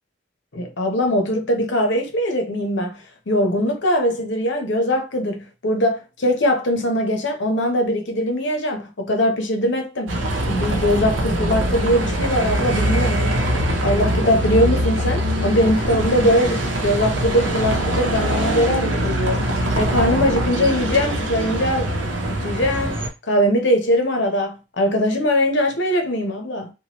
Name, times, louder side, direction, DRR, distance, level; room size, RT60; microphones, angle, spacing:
voice 1, 0.5-10.2 10.5-13.3 13.8-21.9 22.3-26.7, equal, 65° left, 0.8 m, -21 dB
Bus, 10.1-23.1, right 1 dB, 80° right, 0.7 m, -22 dB
2.9 x 2.3 x 2.9 m
head